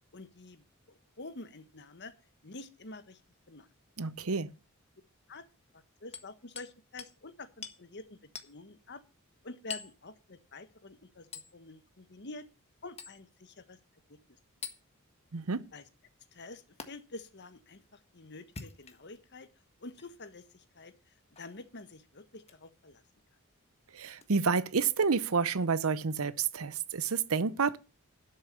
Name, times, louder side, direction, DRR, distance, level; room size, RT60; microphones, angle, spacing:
voice 1, 0.1-2.1 2.4-3.2 3.5-3.7 5.3-5.5 5.7-9.0 9.4-11.3 11.5-12.5 12.8-13.8 14.1-14.2 15.7-15.8 16.3-19.5 19.8-20.9 21.3-23.0, left 2 dB, 55° left, 1.5 m, -48 dB
voice 2, 4.0-4.5 15.3-15.6 23.9-27.8, right 5 dB, 75° right, 0.7 m, -29 dB
Hammer, 6.1-6.7 7.0-7.2 7.6-7.8 8.3-8.5 9.7-10.0 11.3-11.5 13.0-13.2 14.6-14.8 16.8-16.9 18.4-19.2 19.9-20.1 21.3-21.5 22.4-22.6 24.2-24.3, left 6 dB, 30° left, 1.5 m, -44 dB
12.0 x 6.9 x 6.9 m
head